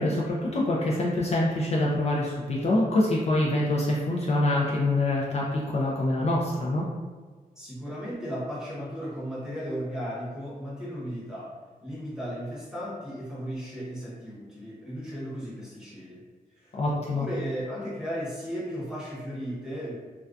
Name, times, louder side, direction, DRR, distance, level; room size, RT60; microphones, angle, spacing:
voice 1, 0.0-6.9 16.8-17.3, left 1 dB, 45° left, -5 dB, 0.4 m, -25 dB
voice 2, 7.6-11.5 11.8-16.2 16.6-19.9, equal, 5° right, -8 dB, 0.8 m, -35 dB
2.3 x 2.2 x 2.5 m, 1.4 s
wide cardioid pair, 115°, 15 cm